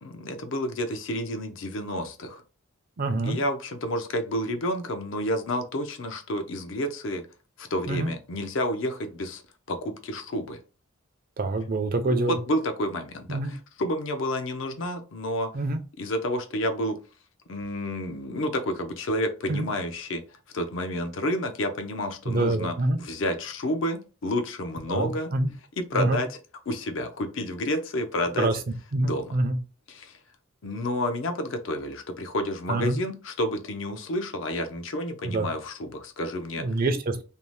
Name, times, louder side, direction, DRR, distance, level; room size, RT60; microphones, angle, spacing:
voice 1, 0.0-2.4 3.2-7.2 7.6-9.4 9.7-10.6 11.9-15.5 16.0-17.0 17.5-20.2 20.5-25.3 25.8-26.4 26.7-28.5 29.0-29.4 29.9-30.2 30.6-36.8, left 1 dB, 65° left, 6 dB, 0.5 m, -30 dB
voice 2, 3.0-3.4 7.9-8.1 11.4-12.4 13.3-13.5 15.5-15.8 19.5-19.7 22.3-23.0 24.9-25.5 25.9-26.2 28.4-28.6 28.9-29.6 32.7-33.0 35.2-35.5 36.6-37.2, right 2 dB, 45° right, 8 dB, 0.4 m, -26 dB
2.7 x 2.0 x 3.1 m, 0.33 s
head